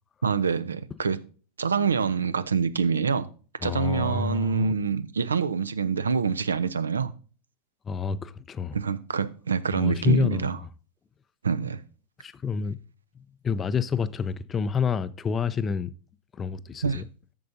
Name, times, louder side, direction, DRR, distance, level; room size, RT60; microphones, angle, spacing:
voice 1, 0.2-1.2 1.6-3.3 3.6-7.1 8.7-10.6 11.4-11.8 16.8-17.0, right 5 dB, 75° right, 0.6 m, -26 dB
voice 2, 3.6-4.7 7.9-8.8 9.7-10.5 12.2-12.8 13.4-15.9 16.3-17.1, left 6 dB, 20° left, 0.5 m, -28 dB
10.5 x 7.5 x 2.7 m
figure-of-eight pair, 90°, 0 cm